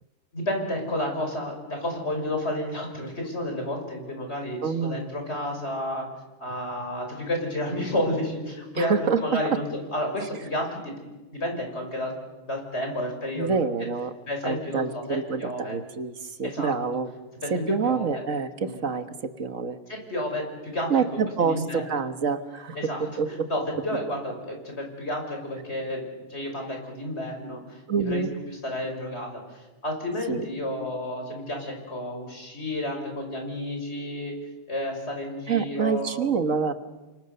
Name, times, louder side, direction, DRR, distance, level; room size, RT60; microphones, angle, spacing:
voice 1, 0.3-6.1 6.4-10.9 11.3-12.1 12.5-13.6 14.3-15.8 16.4-16.7 17.4-18.2 18.6-18.7 19.9-20.9 21.4-22.1 22.8-34.3 34.7-36.2, left 1 dB, 50° left, 3 dB, 5.9 m, -31 dB
voice 2, 4.6-5.1 8.7-9.2 13.4-14.1 14.4-17.1 17.5-19.8 20.9-23.5 27.9-28.3 30.3-30.4 35.5-36.7, right 5 dB, 70° right, 10 dB, 1.7 m, -27 dB
29.5 x 25.5 x 6.8 m, 1.2 s
omnidirectional pair, 1.4 m